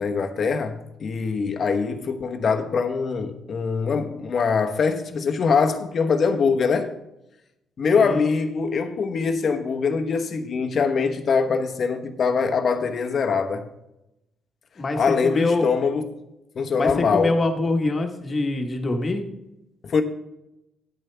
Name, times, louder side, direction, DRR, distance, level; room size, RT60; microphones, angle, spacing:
voice 1, 0.0-6.9 7.8-13.6 15.0-16.0 16.5-17.3 19.8-20.0, left 5 dB, 50° left, 1.0 m, -23 dB
voice 2, 8.0-8.3 14.8-15.7 16.8-19.2, left 2 dB, 35° left, 1.5 m, -24 dB
10.5 x 8.8 x 3.4 m
cardioid pair, 90°, 0 cm